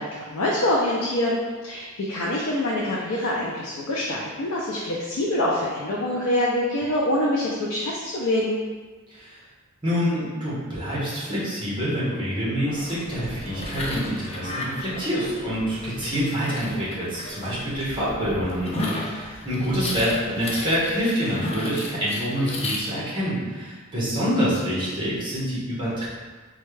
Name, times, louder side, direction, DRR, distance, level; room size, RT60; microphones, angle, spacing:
voice 1, 0.0-8.6, left 1 dB, 85° left, -4 dB, 0.6 m, -25 dB
voice 2, 9.8-26.1, equal, 25° right, -8 dB, 1.3 m, -26 dB
sound 1, 12.7-22.8, left 2 dB, 30° left, 0.5 m, -34 dB
4.3 x 2.3 x 3.2 m, 1.4 s
head